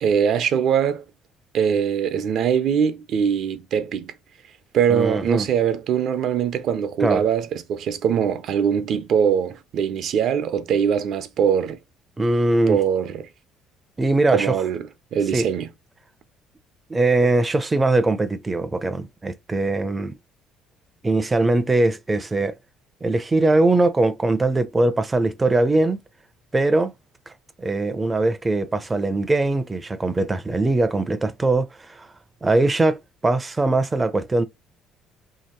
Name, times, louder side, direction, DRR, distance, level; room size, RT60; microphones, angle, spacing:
voice 1, 0.0-1.0 1.5-4.1 4.7-11.8 12.7-13.2 14.3-14.8 15.1-15.7, right 8 dB, 60° right, 0.6 m, -22 dB
voice 2, 4.9-5.5 7.0-7.2 12.2-12.8 14.0-14.6 15.3-15.5 16.9-20.1 21.0-22.5 23.0-26.0 26.5-26.9 27.6-32.1 32.4-34.4, right 2 dB, 20° right, 0.5 m, -21 dB
2.9 x 2.8 x 4.3 m
cardioid pair, 105°, 0 cm